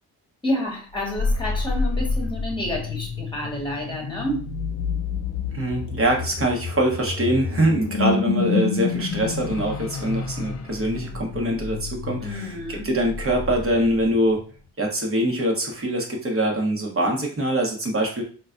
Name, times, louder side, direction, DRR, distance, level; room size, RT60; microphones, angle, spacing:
voice 1, 0.4-4.4 12.2-12.9, left 1 dB, 10° left, -1 dB, 1.2 m, -29 dB
sound 1, 0.9-14.4, left 4 dB, 40° left, 0.4 m, -29 dB
voice 2, 5.5-14.4 14.8-18.2, right 1 dB, 30° right, 0 dB, 1.0 m, -23 dB
3.9 x 2.2 x 2.5 m, 0.42 s
cardioid pair, 75°, 42 cm